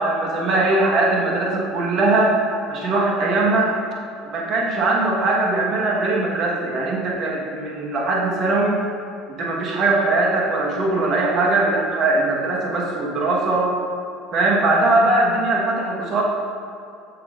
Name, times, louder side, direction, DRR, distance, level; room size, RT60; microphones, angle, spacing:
voice 1, 0.0-2.4 2.7-3.7 4.2-8.8 9.4-13.7 14.3-16.2, right 2 dB, 50° right, -2 dB, 1.4 m, -20 dB
7.4 x 7.1 x 2.6 m, 2.5 s
hypercardioid pair, 70°, 0 cm